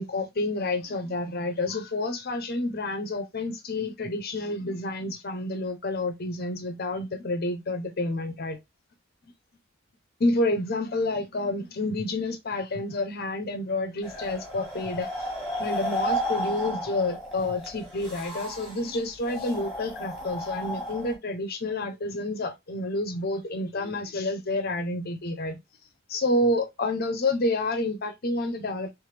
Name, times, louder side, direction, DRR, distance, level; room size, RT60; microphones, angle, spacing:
voice 1, 0.0-8.6 10.2-15.3 15.6-25.6 26.1-28.9, left 2 dB, 45° left, 0.6 m, -29 dB
sound 1, 14.0-21.1, equal, ahead, 1.4 m, -33 dB
3.3 x 3.2 x 3.2 m
head